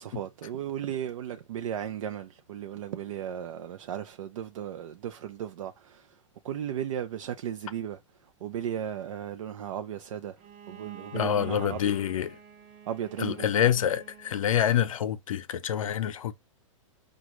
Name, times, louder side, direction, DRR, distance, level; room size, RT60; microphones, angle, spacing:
voice 1, 0.0-6.1 6.4-8.0 8.4-10.4 10.7-11.9 12.9-13.4, right 10 dB, 75° right, 0.5 m, -35 dB
Bowed string instrument, 10.4-15.1, right 8 dB, 40° right, 0.9 m, -49 dB
voice 2, 11.1-12.4 13.2-16.3, left 10 dB, 80° left, 0.7 m, -27 dB
5.1 x 2.4 x 3.0 m
hypercardioid pair, 135°, 17 cm